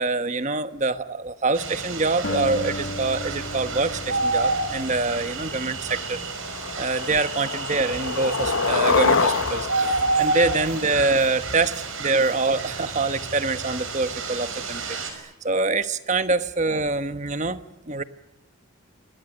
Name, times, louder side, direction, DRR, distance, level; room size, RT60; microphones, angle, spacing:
voice 1, 0.0-6.2 6.7-9.7 9.9-17.6 17.9-18.0, right 3 dB, 35° right, 11 dB, 1.1 m, -25 dB
sound 1, 1.5-15.1, right 3 dB, 65° right, 5.7 m, -30 dB
Acoustic guitar, 2.2-6.7, left 1 dB, 55° left, 1.5 m, -35 dB
Skateboard, 5.4-5.5 5.8-6.2 6.5-11.1, left 4 dB, 75° left, 1.1 m, -26 dB
26.5 x 20.5 x 9.2 m, 0.95 s
head